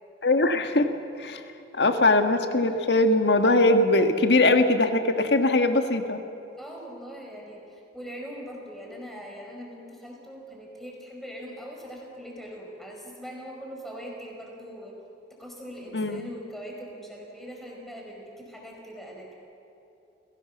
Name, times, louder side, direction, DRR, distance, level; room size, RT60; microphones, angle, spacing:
voice 1, 0.2-0.9 1.2-1.4 1.7-6.2 15.9-16.2, left 2 dB, 70° left, 7 dB, 1.6 m, -21 dB
voice 2, 6.6-7.6 7.9-14.9 15.4-19.3, equal, ahead, -1 dB, 4.8 m, -41 dB
29.5 x 17.0 x 7.2 m, 2.9 s
head